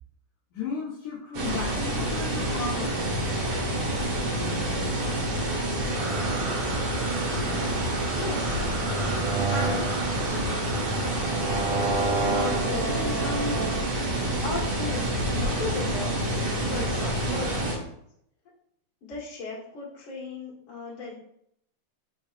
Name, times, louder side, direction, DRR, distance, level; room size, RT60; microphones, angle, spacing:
voice 1, 0.5-3.0, left 5 dB, 70° left, -7 dB, 2.1 m, -34 dB
sound 1, 1.3-17.8, right 1 dB, 60° right, 1.9 m, -28 dB
sound 2, 5.9-13.8, right 4 dB, 75° right, 2.5 m, -31 dB
voice 2, 7.2-7.5 8.1-8.6 9.5-10.7 12.3-14.1 14.4-16.2 16.7-17.6 19.0-21.1, left 3 dB, 45° left, -6 dB, 1.9 m, -36 dB
5.5 x 3.9 x 2.5 m, 0.73 s
omnidirectional pair, 4.5 m